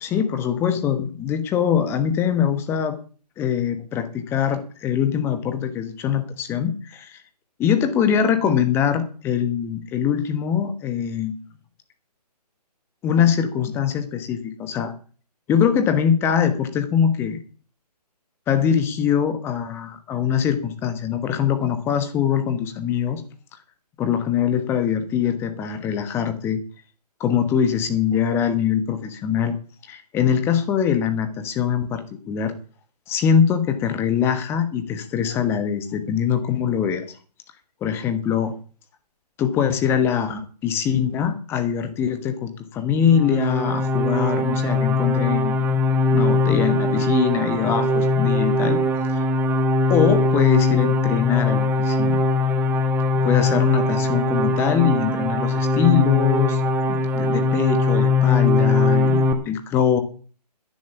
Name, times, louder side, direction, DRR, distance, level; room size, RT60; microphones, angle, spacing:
voice 1, 0.0-3.0 3.4-7.2 7.6-11.3 13.0-14.9 15.5-17.4 18.5-23.2 24.0-26.6 27.2-29.5 29.9-32.5 33.1-37.1 37.8-38.5 39.4-45.6 46.1-48.8 49.1-49.2 49.9-52.2 53.2-56.6 56.9-60.0, left 8 dB, 10° left, 9 dB, 1.3 m, -22 dB
sound 1, 43.1-59.3, left 3 dB, 10° right, 1.0 m, -21 dB
10.5 x 10.5 x 7.3 m, 0.40 s
figure-of-eight pair, 150°, 21 cm